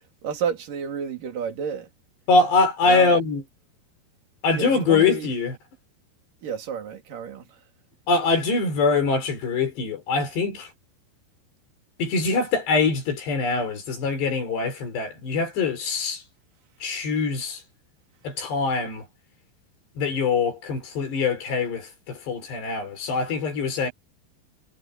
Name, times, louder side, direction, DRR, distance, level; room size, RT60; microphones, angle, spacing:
voice 1, 0.2-1.9 2.8-3.2 4.5-5.3 6.4-7.6, right 7 dB, 45° right, 4.3 m, -31 dB
voice 2, 2.3-3.4 4.4-5.6 8.1-10.7 12.0-16.2 16.8-17.6 18.2-19.1 20.0-23.9, left 4 dB, 55° left, 6.9 m, -23 dB
omnidirectional pair, 5.9 m